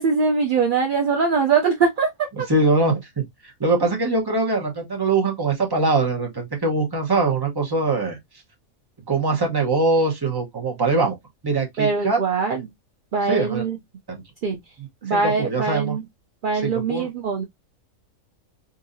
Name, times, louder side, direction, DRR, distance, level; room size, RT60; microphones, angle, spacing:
voice 1, 0.0-2.1 2.4-2.5 11.8-12.7 13.1-13.8 14.4-14.6 15.0-16.0 16.4-17.4, right 5 dB, 60° right, 0.5 m, -22 dB
voice 2, 2.5-3.2 3.6-8.2 9.1-11.2 11.4-12.2 13.3-13.6 15.1-16.0 16.6-17.1, right 3 dB, 20° right, 0.8 m, -22 dB
3.9 x 2.6 x 2.6 m
omnidirectional pair, 1.5 m